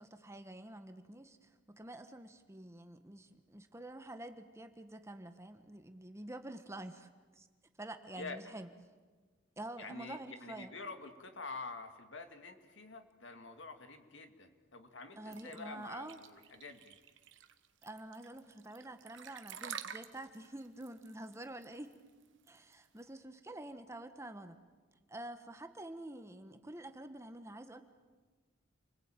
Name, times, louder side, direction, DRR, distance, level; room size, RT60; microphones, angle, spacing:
voice 1, 0.0-7.5 7.8-8.7 9.6-10.7 15.2-16.2 17.8-22.0 22.5-24.6 25.1-27.8, right 1 dB, 15° right, 8 dB, 1.3 m, -48 dB
voice 2, 8.2-8.5 9.8-17.0, left 3 dB, 60° left, 7 dB, 2.3 m, -47 dB
sound 1, 15.3-23.0, right 8 dB, 60° right, 1.3 m, -49 dB
29.0 x 20.5 x 9.0 m, 1.4 s
head